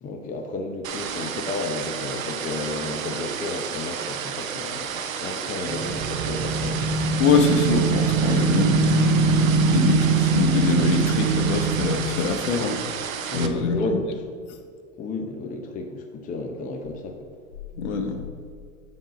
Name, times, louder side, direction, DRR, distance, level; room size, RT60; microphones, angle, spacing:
voice 1, 0.0-4.9 5.2-7.0 13.3-14.2 15.0-17.2, left 2 dB, 20° left, 4 dB, 0.7 m, -32 dB
sound 1, 0.8-13.5, right 7 dB, 85° right, 0.7 m, -32 dB
sound 2, 5.7-12.0, right 4 dB, 25° right, 0.7 m, -22 dB
voice 2, 7.2-12.9 13.3-14.0 17.8-18.2, left 5 dB, 60° left, 6 dB, 1.1 m, -24 dB
7.3 x 5.3 x 5.0 m, 2.2 s
hypercardioid pair, 100°, 39 cm